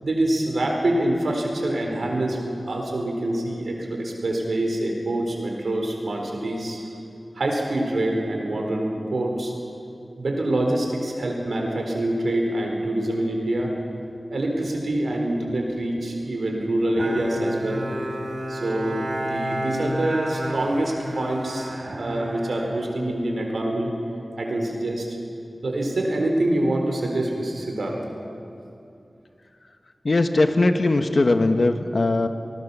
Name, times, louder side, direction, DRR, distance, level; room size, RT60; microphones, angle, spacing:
voice 1, 0.0-6.8 7.4-9.5 10.2-13.7 14.3-17.9 18.5-21.7 22.0-23.9 24.4-25.1 25.6-28.0, right 1 dB, 85° right, 1 dB, 4.1 m, -25 dB
Bowed string instrument, 17.0-23.6, equal, 60° right, 3.8 m, -31 dB
voice 2, 30.0-32.3, left 2 dB, 60° left, 7 dB, 1.4 m, -20 dB
26.0 x 19.5 x 7.0 m, 2.6 s
wide cardioid pair, 70°, 0 cm